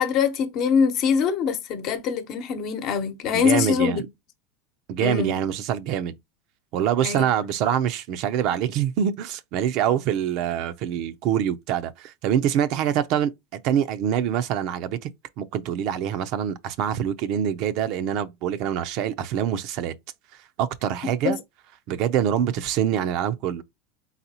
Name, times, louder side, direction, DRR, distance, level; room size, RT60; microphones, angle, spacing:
voice 1, 0.0-4.0 5.0-5.4 7.0-7.3 21.2-21.4, left 6 dB, 50° left, 0.9 m, -23 dB
voice 2, 3.3-4.0 4.9-6.2 6.7-13.3 13.6-15.1 15.4-19.9 20.6-21.4 21.9-23.6, right 9 dB, 55° right, 0.6 m, -25 dB
4.0 x 3.9 x 2.9 m
supercardioid pair, 120°, 0 cm